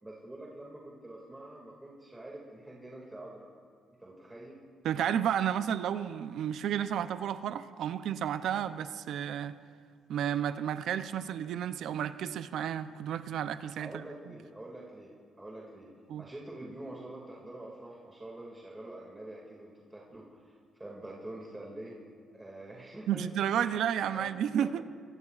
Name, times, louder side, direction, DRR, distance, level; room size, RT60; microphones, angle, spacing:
voice 1, 0.0-3.5 4.0-4.6 13.8-15.1 15.4-15.9 16.2-21.9 22.3-23.3 23.5-23.7 24.1-24.3 24.6-24.7, right 1 dB, 15° right, -4 dB, 2.2 m, -46 dB
voice 2, 4.8-9.6 10.1-14.3 16.1-16.3 23.1-24.8, right 9 dB, 75° right, 12 dB, 0.5 m, -32 dB
22.5 x 19.0 x 2.4 m, 2.1 s
cardioid pair, 90°, 0 cm